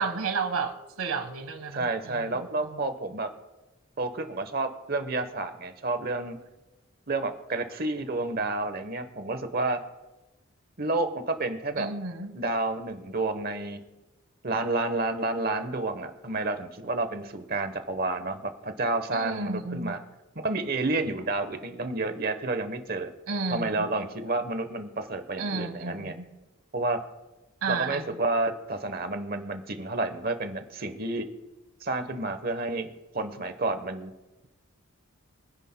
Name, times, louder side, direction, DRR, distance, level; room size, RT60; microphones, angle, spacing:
voice 1, 0.0-2.8 11.8-12.4 19.1-20.0 23.3-23.9 25.4-26.3 27.6-28.1, right 4 dB, 85° right, 1.4 m, -32 dB
voice 2, 1.7-3.3 4.0-6.4 7.1-9.8 10.8-11.9 12.3-13.8 14.4-20.0 20.3-23.1 23.5-26.2 26.7-27.0 27.7-31.3 31.8-34.1, right 2 dB, 45° right, 1.0 m, -30 dB
24.5 x 10.0 x 2.2 m
head